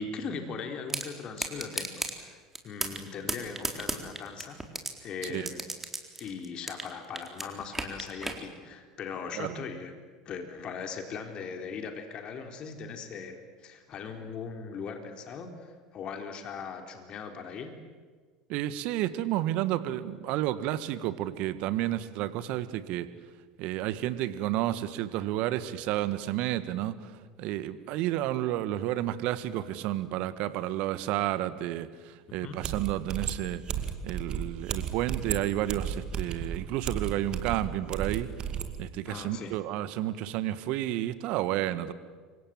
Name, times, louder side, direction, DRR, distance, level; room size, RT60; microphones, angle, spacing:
voice 1, 0.0-4.6 5.0-5.6 6.2-9.9 10.3-17.7 32.4-32.6 39.1-39.5, left 5 dB, 45° left, 5 dB, 3.9 m, -39 dB
sound 1, 0.9-1.1 1.4-2.1 2.5-3.0 3.3-4.9 5.2-6.9 7.2-8.4, right 2 dB, 10° right, 4.1 m, -33 dB
voice 2, 18.5-23.1 23.6-33.6 34.0-38.3 38.8-41.9, right 14 dB, 55° right, 14 dB, 1.7 m, -31 dB
sound 2, 32.3-32.4 32.6-38.7, right 8 dB, 40° right, 2.4 m, -34 dB
28.5 x 25.0 x 7.7 m, 1.5 s
hypercardioid pair, 75°, 2 cm